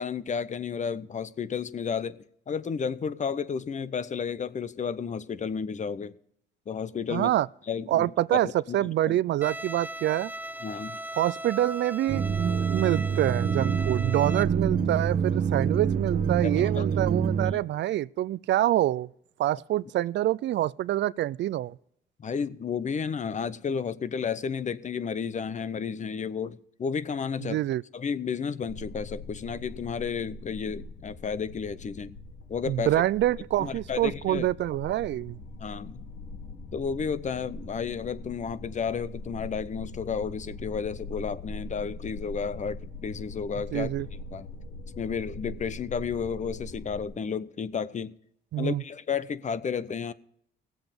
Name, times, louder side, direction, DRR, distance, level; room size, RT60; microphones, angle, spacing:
voice 1, 0.0-2.2 2.5-6.2 6.7-7.3 7.7-9.2 10.6-11.0 16.4-16.9 17.5-17.6 22.2-27.6 27.9-32.2 32.5-33.0 33.6-34.5 35.6-36.0 36.7-43.9 44.3-44.5 45.0-48.1 48.6-50.1, left 6 dB, 40° left, 0.7 m, -32 dB
voice 2, 7.1-7.5 7.9-8.5 8.7-10.3 11.2-12.2 12.7-19.1 19.4-21.7 27.5-27.8 32.7-35.4 43.7-44.1 48.5-48.8, right 14 dB, 65° right, 0.4 m, -26 dB
Bowed string instrument, 9.4-14.4, right 1 dB, 10° right, 0.5 m, -38 dB
sound 1, 12.1-17.5, right 6 dB, 50° right, 1.1 m, -26 dB
sound 2, 28.7-47.1, left 2 dB, 70° left, 1.8 m, -42 dB
17.5 x 7.9 x 5.2 m
cardioid pair, 90°, 20 cm